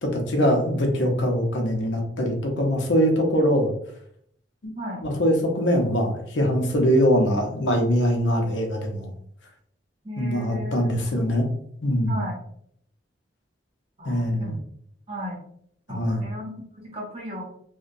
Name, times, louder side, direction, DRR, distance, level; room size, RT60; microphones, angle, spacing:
voice 1, 0.0-3.7 4.6-4.7 5.0-9.1 10.2-11.5 11.8-12.2 14.1-14.5 15.9-16.2, equal, 75° left, 2 dB, 0.6 m, -22 dB
voice 2, 10.0-11.2 12.0-12.4 14.0-14.6 15.1-15.4 15.9-17.4, equal, 30° right, -2 dB, 0.7 m, -35 dB
2.7 x 2.1 x 2.5 m, 0.67 s
head